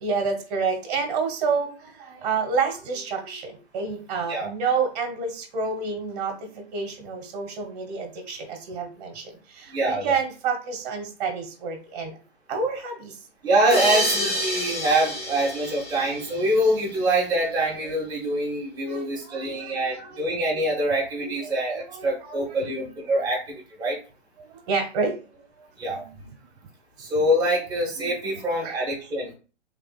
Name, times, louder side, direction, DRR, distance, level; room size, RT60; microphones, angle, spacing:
voice 1, 0.0-12.2 12.5-13.2 13.8-14.1 18.8-20.3 21.2-21.5 21.9-22.9 24.4-25.2 25.6-26.3 28.4-28.8, right 5 dB, 35° right, 4 dB, 1.3 m, -29 dB
voice 2, 9.7-10.1 13.4-24.0 25.8-26.0 27.0-29.3, right 1 dB, 10° right, -4 dB, 1.4 m, -25 dB
sound 1, 13.7-17.0, equal, 15° left, 0.9 m, -28 dB
3.5 x 3.4 x 2.3 m, 0.35 s
hypercardioid pair, 130°, 35 cm